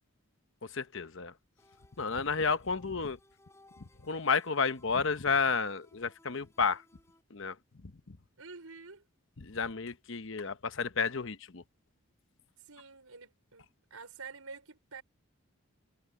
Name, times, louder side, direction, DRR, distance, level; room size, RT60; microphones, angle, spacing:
voice 1, 0.7-1.3 2.0-3.2 4.0-6.8 7.3-7.6 8.1-8.2 9.4-11.6, left 5 dB, 60° left, 0.9 m, -31 dB
sound 1, 1.6-7.2, left 2 dB, 10° left, 6.1 m, -64 dB
voice 2, 8.4-9.0 12.6-15.0, right 4 dB, 80° right, 4.8 m, -48 dB
head